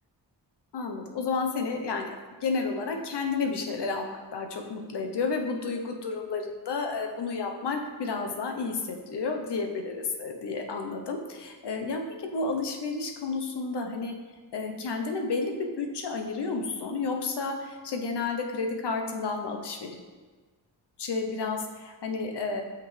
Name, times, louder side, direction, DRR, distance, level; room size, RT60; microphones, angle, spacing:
voice 1, 0.7-2.1 2.4-4.1 4.3-14.1 14.5-20.0 21.0-22.6, left 4 dB, 65° left, 3 dB, 0.8 m, -31 dB
6.0 x 5.7 x 3.2 m, 1.4 s
cardioid pair, 55°, 44 cm